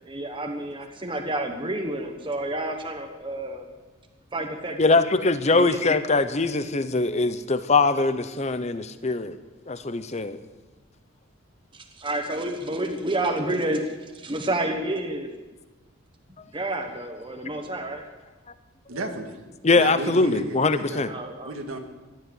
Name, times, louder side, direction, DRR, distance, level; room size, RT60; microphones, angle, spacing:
voice 1, 0.0-3.6 4.3-5.0 5.5-5.8 11.7-15.3 16.5-18.0 21.1-21.5, right 1 dB, 25° right, 3 dB, 1.2 m, -29 dB
voice 2, 4.8-9.4 9.7-10.4 19.6-21.1, left 3 dB, 30° left, 12 dB, 0.8 m, -22 dB
voice 3, 18.9-19.4 19.7-21.0 21.5-21.8, right 2 dB, 80° right, 3 dB, 1.8 m, -33 dB
15.5 x 11.0 x 7.9 m, 1.2 s
head